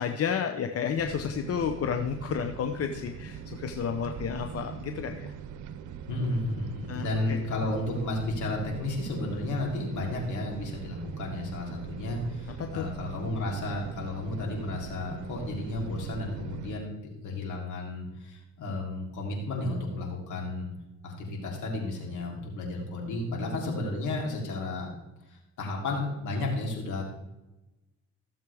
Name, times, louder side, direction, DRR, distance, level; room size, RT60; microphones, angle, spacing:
voice 1, 0.0-5.3 6.9-7.4 12.6-12.9, left 7 dB, 50° left, 6 dB, 0.9 m, -31 dB
sound 1, 1.0-16.8, right 8 dB, 80° right, 0.8 m, -41 dB
voice 2, 6.1-20.7 21.0-24.9 25.3-27.0, left 2 dB, 75° left, -1 dB, 3.5 m, -33 dB
16.0 x 7.4 x 3.5 m, 0.99 s
cardioid pair, 90°, 30 cm